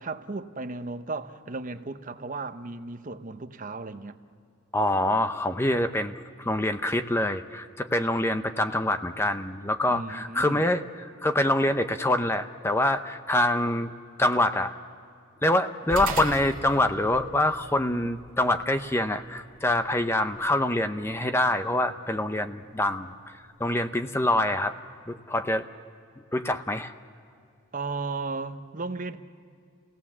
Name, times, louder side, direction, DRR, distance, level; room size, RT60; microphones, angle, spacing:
voice 1, 0.0-4.2 9.9-10.6 27.7-29.2, right 3 dB, 40° right, 0.8 m, -35 dB
voice 2, 4.7-10.8 11.2-13.9 14.2-14.7 15.4-23.1 23.6-24.7 25.1-25.6 26.3-26.9, left 1 dB, 10° left, 0.6 m, -25 dB
sound 1, 15.9-24.6, right 3 dB, 80° right, 1.9 m, -43 dB
29.5 x 17.5 x 7.3 m
head